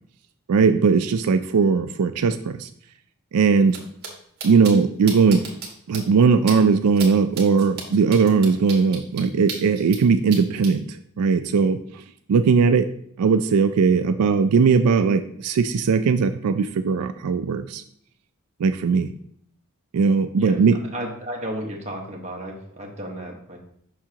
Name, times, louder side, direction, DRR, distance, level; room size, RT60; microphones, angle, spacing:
voice 1, 0.5-2.7 3.3-3.8 4.4-5.4 5.9-12.0 12.3-12.9 13.2-17.8 18.6-19.1 19.9-20.8, right 5 dB, 85° right, 9 dB, 0.4 m, -19 dB
sound 1, 3.7-4.1 4.4-4.7 5.1-5.7 5.9-6.0 6.5-6.6 7.0-7.1 7.4-10.0 10.3-10.7, right 5 dB, 45° right, 1.6 m, -33 dB
voice 2, 20.9-23.6, right 1 dB, 30° right, -1 dB, 1.3 m, -33 dB
7.1 x 6.0 x 2.9 m, 0.67 s
head